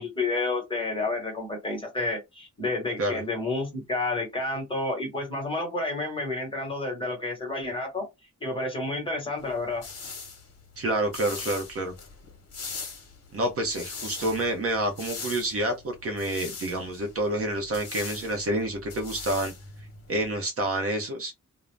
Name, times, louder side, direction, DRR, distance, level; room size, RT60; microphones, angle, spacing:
voice 1, 0.0-8.1 8.4-9.8, left 2 dB, 15° left, 1.1 m, -30 dB
sound 1, 9.4-20.4, left 4 dB, 50° left, 0.9 m, -41 dB
voice 2, 10.8-11.9 13.3-19.5 20.1-21.4, right 1 dB, 50° right, 0.6 m, -28 dB
2.5 x 2.0 x 3.2 m
wide cardioid pair, 180°, 30 cm